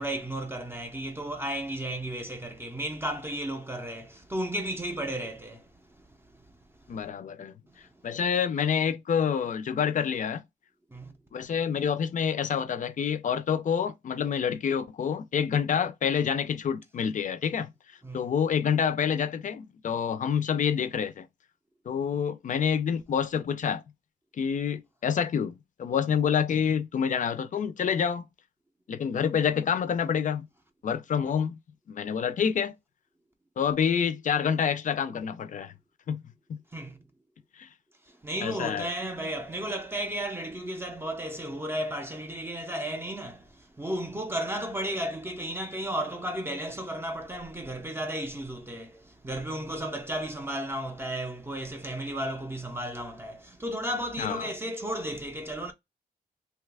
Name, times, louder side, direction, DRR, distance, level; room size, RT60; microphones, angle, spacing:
voice 1, 0.0-5.6 10.9-11.1 18.0-18.3 36.7-37.0 38.2-55.7, right 1 dB, 15° right, 0.5 m, -34 dB
voice 2, 6.9-7.5 8.0-10.4 11.3-17.7 18.1-21.3 21.9-23.8 24.4-28.2 28.9-30.5 30.8-31.5 31.9-32.7 33.6-35.7 36.1-36.2 37.6-37.7 38.4-38.9 54.2-54.5, left 7 dB, 50° left, 0.4 m, -27 dB
2.8 x 2.3 x 3.3 m
wide cardioid pair, 160°, 17 cm